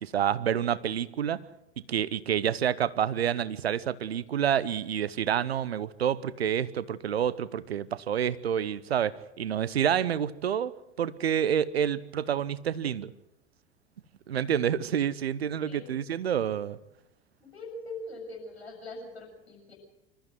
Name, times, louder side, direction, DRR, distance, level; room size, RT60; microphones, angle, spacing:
voice 1, 0.0-1.4 1.9-13.1 14.3-16.8, right 9 dB, 80° right, 19 dB, 0.9 m, -28 dB
voice 2, 15.7-16.0 17.4-19.7, left 2 dB, 90° left, 1 dB, 7.0 m, -42 dB
25.5 x 14.0 x 7.7 m, 0.89 s
figure-of-eight pair, 75°, 31 cm